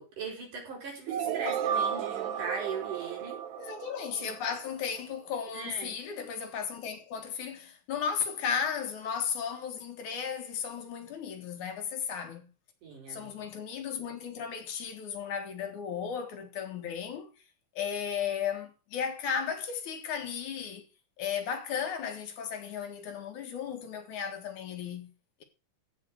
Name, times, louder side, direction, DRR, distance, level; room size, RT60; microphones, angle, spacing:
voice 1, 0.0-3.4 4.2-4.3 5.5-6.0 12.8-13.5, right 4 dB, 70° right, 6.6 m, -39 dB
sound 1, 1.1-5.0, right 8 dB, 90° right, 1.2 m, -33 dB
voice 2, 3.6-12.5 13.1-17.3 17.7-20.8 21.2-25.1, left 7 dB, 70° left, 3.0 m, -35 dB
15.0 x 5.2 x 6.2 m
omnidirectional pair, 3.7 m